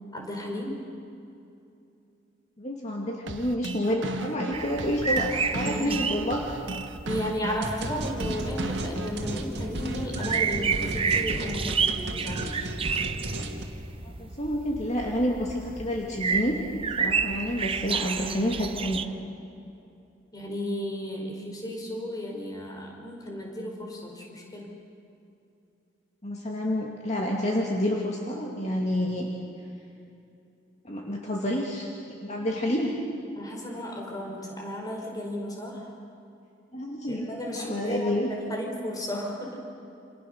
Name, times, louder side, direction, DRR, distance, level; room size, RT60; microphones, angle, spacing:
voice 1, 0.1-0.8 5.6-6.0 7.0-12.7 20.3-24.7 33.4-35.9 37.1-39.7, equal, 20° left, 0 dB, 4.9 m, -34 dB
voice 2, 2.6-6.4 14.2-16.6 17.0-19.0 26.2-29.3 30.8-31.9 32.2-32.9 36.7-37.3 37.6-38.3, equal, 35° left, -1 dB, 2.4 m, -28 dB
sound 1, 3.3-9.3, right 2 dB, 90° right, 1.3 m, -35 dB
sound 2, 4.5-19.1, right 5 dB, 30° right, 0.8 m, -31 dB
sound 3, 7.6-13.6, right 1 dB, 60° right, 2.5 m, -34 dB
29.0 x 27.5 x 6.7 m, 2.6 s
head